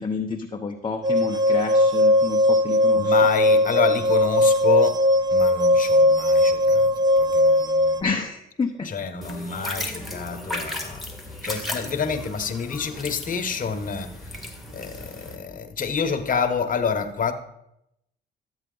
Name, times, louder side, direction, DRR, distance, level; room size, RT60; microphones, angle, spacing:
voice 1, 0.0-3.2 8.0-8.9, left 4 dB, 25° left, 0.8 m, -29 dB
sound 1, 1.0-8.0, left 1 dB, 20° right, 0.7 m, -19 dB
voice 2, 3.0-5.0 5.3-6.9 7.2-8.1 8.8-11.1 11.4-14.1 14.7-17.3, left 6 dB, 40° left, 1.1 m, -28 dB
sound 2, 9.2-15.4, left 1 dB, ahead, 1.7 m, -35 dB
12.0 x 8.0 x 3.9 m
cardioid pair, 90°, 20 cm